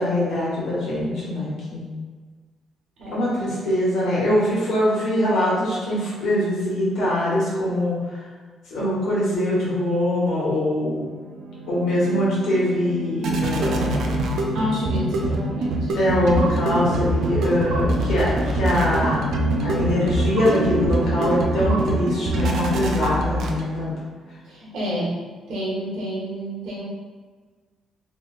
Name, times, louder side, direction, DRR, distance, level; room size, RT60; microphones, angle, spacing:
voice 1, 0.0-1.9 3.1-8.2 8.7-11.0 11.7-14.2 15.9-19.2 19.6-23.9, left 1 dB, 85° left, -7 dB, 1.3 m, -23 dB
sound 1, 11.1-23.9, right 1 dB, 70° right, 0.4 m, -24 dB
voice 2, 14.5-15.9 24.4-26.8, equal, 90° right, -6 dB, 1.1 m, -29 dB
3.0 x 3.0 x 2.4 m, 1.4 s
cardioid pair, 135°, 0 cm